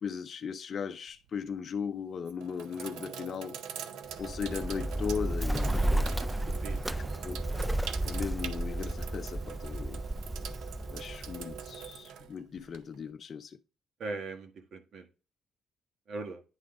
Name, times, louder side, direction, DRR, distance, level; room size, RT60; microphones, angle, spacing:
voice 1, 0.0-3.6 4.2-6.2 6.9-7.4 8.0-10.0 10.9-13.6, left 6 dB, 50° left, 0.5 m, -37 dB
Sink (filling or washing), 1.1-1.5 2.2-13.1, right 8 dB, 90° right, 0.6 m, -44 dB
Bird, 4.1-11.9, right 1 dB, 10° right, 0.3 m, -33 dB
voice 2, 6.5-6.9 14.0-15.1 16.1-16.4, right 3 dB, 65° right, 1.5 m, -40 dB
9.7 x 3.8 x 3.6 m
cardioid pair, 90°, 0 cm